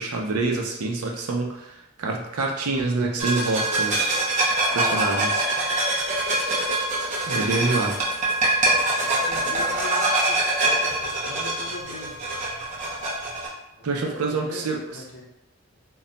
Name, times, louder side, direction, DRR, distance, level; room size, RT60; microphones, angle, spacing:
voice 1, 0.0-4.2 4.7-5.5 7.3-8.0 13.8-15.0, right 3 dB, 85° right, 1 dB, 0.5 m, -26 dB
sound 1, 3.2-13.5, right 2 dB, 35° right, 0.5 m, -24 dB
voice 2, 8.9-12.2 13.8-15.3, left 1 dB, 70° left, -1 dB, 0.6 m, -40 dB
2.2 x 2.1 x 3.8 m, 0.84 s
head